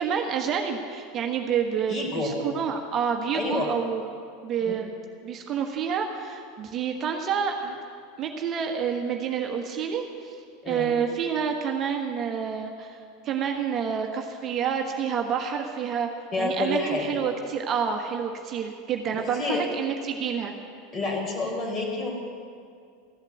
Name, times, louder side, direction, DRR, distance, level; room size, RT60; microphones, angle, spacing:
voice 1, 0.0-4.1 4.4-4.9 5.2-7.8 8.2-10.4 10.7-16.1 16.4-20.5, right 7 dB, 40° right, 3 dB, 1.3 m, -28 dB
voice 2, 1.9-2.3 3.3-3.7 4.6-4.8 10.6-10.9 16.3-17.2 19.3-19.6 20.9-22.1, left 2 dB, 30° left, 0 dB, 4.0 m, -28 dB
14.5 x 8.1 x 8.3 m, 2.3 s
hypercardioid pair, 90°, 0 cm